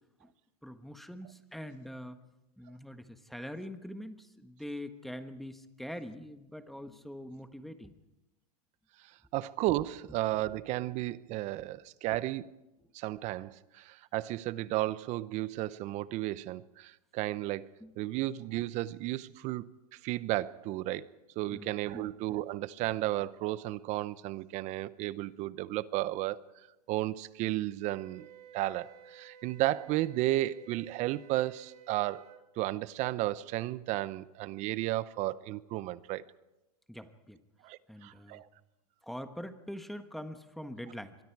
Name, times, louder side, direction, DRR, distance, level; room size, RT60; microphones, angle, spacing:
voice 1, 0.6-2.2 2.6-7.9 17.8-18.0 21.5-22.1 36.9-37.4 37.9-38.4 39.0-41.2, equal, ahead, 1.3 m, -44 dB
voice 2, 9.3-12.5 12.9-17.7 18.0-21.1 21.4-26.4 26.9-32.3 32.6-36.2 37.6-38.5, right 16 dB, 35° right, 0.8 m, -33 dB
Wind instrument woodwind instrument, 27.9-32.4, right 8 dB, 75° right, 2.8 m, -54 dB
25.5 x 23.0 x 4.7 m
hypercardioid pair, 135°, 20 cm